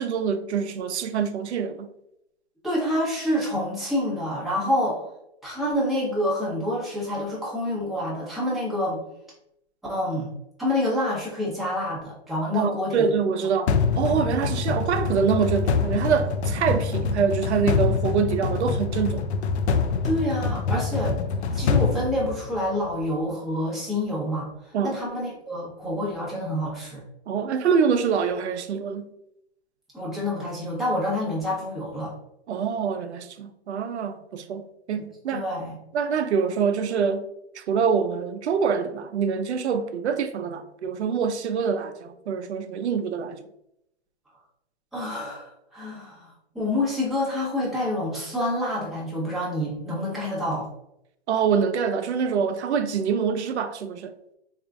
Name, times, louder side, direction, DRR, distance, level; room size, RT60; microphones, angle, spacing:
voice 1, 0.0-1.9 12.5-19.3 24.7-25.0 27.3-29.1 32.5-35.4 35.9-37.3 37.5-43.4 51.3-54.1, right 6 dB, 90° right, 0.5 m, -25 dB
voice 2, 2.6-5.0 5.4-9.0 9.9-10.3 10.6-13.1 20.0-21.2 21.5-27.0 29.9-32.1 35.3-35.8 44.9-50.7, left 1 dB, ahead, 0.8 m, -27 dB
sound 1, 13.7-22.9, left 5 dB, 80° left, 0.5 m, -25 dB
3.6 x 2.4 x 3.4 m
hypercardioid pair, 150°, 33 cm